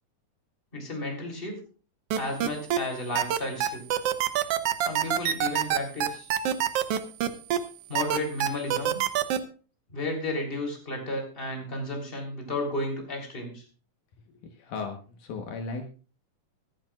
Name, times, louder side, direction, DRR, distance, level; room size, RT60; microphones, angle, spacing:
voice 1, 0.7-1.5 2.2-4.0 4.8-6.3 7.9-9.0 9.9-13.6, left 1 dB, 15° left, 2 dB, 3.4 m, -33 dB
sound 1, 2.1-2.8 3.1-7.6 7.9-9.4, right 11 dB, 80° right, 1.3 m, -25 dB
voice 2, 14.3-15.8, left 4 dB, 70° left, 4 dB, 2.7 m, -36 dB
24.0 x 9.1 x 2.4 m, 0.37 s
omnidirectional pair, 3.8 m